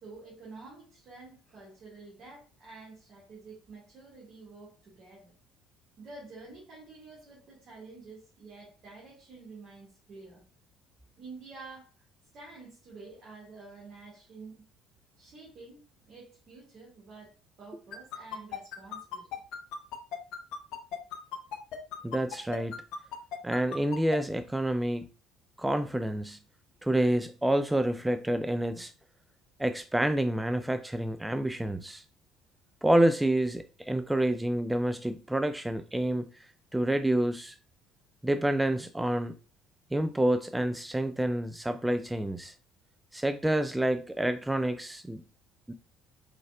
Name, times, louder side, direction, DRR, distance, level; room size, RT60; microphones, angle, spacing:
voice 1, 0.0-5.3 6.0-10.4 11.2-11.9 12.3-14.6 15.2-17.3 17.6-19.4, right 3 dB, 50° right, 1.9 m, -49 dB
sound 1, 17.9-24.2, left 8 dB, 60° left, 0.6 m, -36 dB
voice 2, 22.0-22.8 23.4-25.1 25.6-26.4 26.8-28.9 29.6-32.0 32.8-36.3 36.7-37.5 38.2-39.4 39.9-42.5 43.1-45.2 45.7-45.8, right 1 dB, 10° right, 0.3 m, -28 dB
4.7 x 4.1 x 2.3 m
figure-of-eight pair, 55°, 0 cm